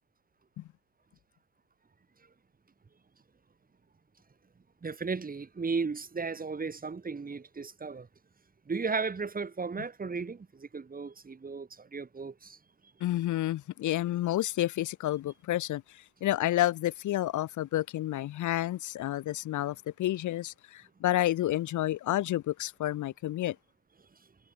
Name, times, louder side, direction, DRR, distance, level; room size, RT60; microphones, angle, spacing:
voice 1, 4.8-8.1 8.7-12.6, right 4 dB, 30° right, 2.8 m, -35 dB
voice 2, 13.0-23.6, left 14 dB, 75° left, 1.3 m, -30 dB
cardioid pair, 90°, 30 cm